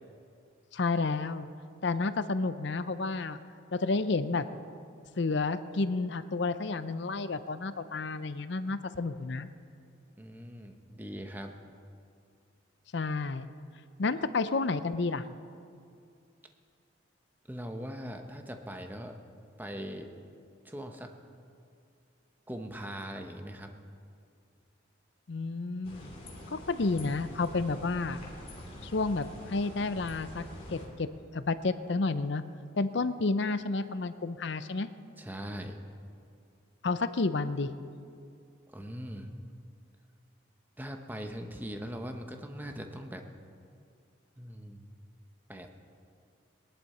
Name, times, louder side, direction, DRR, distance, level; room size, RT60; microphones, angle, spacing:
voice 1, 0.7-1.5 1.8-3.4 3.7-4.5 5.2-9.5 12.9-13.5 14.0-15.2 25.3-26.1 26.5-28.2 28.8-30.4 30.7-31.1 31.3-32.4 32.8-34.9 36.8-37.7, left 3 dB, 60° left, 12 dB, 0.6 m, -30 dB
voice 2, 10.2-11.5 17.5-19.2 19.6-20.1 20.6-21.2 22.5-23.7 35.2-35.8 38.7-39.3 40.8-43.2 44.4-44.9 45.5-45.8, equal, 10° right, 5 dB, 0.9 m, -41 dB
sound 1, 25.8-30.9, left 1 dB, 30° left, 2.6 m, -45 dB
21.0 x 11.5 x 4.3 m, 2.4 s
head